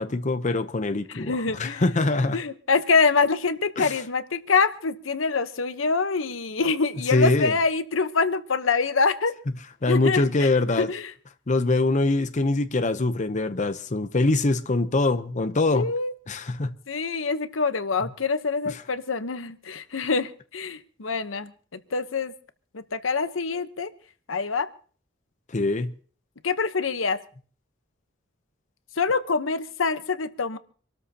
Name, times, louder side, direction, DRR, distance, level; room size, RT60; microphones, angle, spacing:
voice 1, 0.0-2.4 3.8-4.0 7.1-7.5 9.8-10.9 11.5-15.9 16.3-16.7 18.7-18.8 25.5-25.9, left 2 dB, 40° left, 0.7 m, -23 dB
voice 2, 1.1-1.8 2.3-9.3 9.9-10.5 10.8-11.0 15.7-16.1 16.9-21.5 21.9-22.3 22.7-23.9 24.3-24.7 26.4-27.2 29.0-30.6, left 4 dB, 85° left, 1.0 m, -25 dB
26.5 x 13.5 x 2.9 m
head